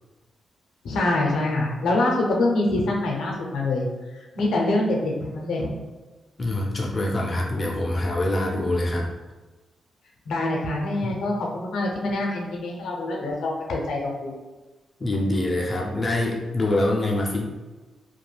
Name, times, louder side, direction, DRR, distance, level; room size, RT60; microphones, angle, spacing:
voice 1, 0.8-3.9 4.4-5.7 10.3-14.3, left 2 dB, 85° left, -1 dB, 0.6 m, -25 dB
voice 2, 6.4-9.1 11.0-11.2 15.0-17.5, left 1 dB, 30° left, -2 dB, 0.4 m, -25 dB
2.5 x 2.2 x 3.2 m, 1.2 s
cardioid pair, 110°, 0 cm